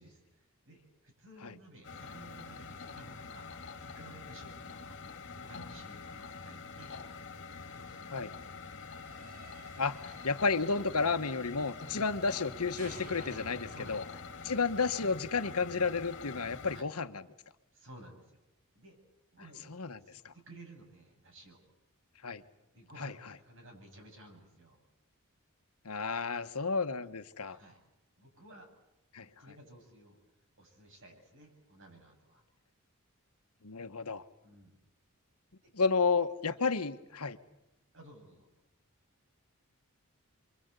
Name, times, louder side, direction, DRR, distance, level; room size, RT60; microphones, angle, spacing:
voice 1, 0.0-5.0 5.3-7.0 7.7-8.5 11.9-12.1 13.7-14.2 16.7-16.9 17.7-18.4 18.7-19.0 19.3-21.6 22.7-24.8 27.4-27.8 28.2-28.7 29.2-30.2 30.6-32.4 34.4-34.8 35.6-35.7 36.5-36.6 37.9-38.5, right 1 dB, 60° right, 3 dB, 7.6 m, -55 dB
sound 1, 1.8-16.8, left 4 dB, 55° left, 2.5 m, -46 dB
sound 2, 8.6-12.5 12.8-15.8, right 1 dB, 40° right, 4.4 m, -54 dB
voice 2, 9.8-14.0 14.4-17.2 19.7-20.3 22.2-22.4 23.0-23.1 25.8-27.6 29.1-29.3 33.6-34.2 35.7-37.4, left 4 dB, 80° left, 10 dB, 1.4 m, -32 dB
28.5 x 24.5 x 8.3 m, 0.89 s
head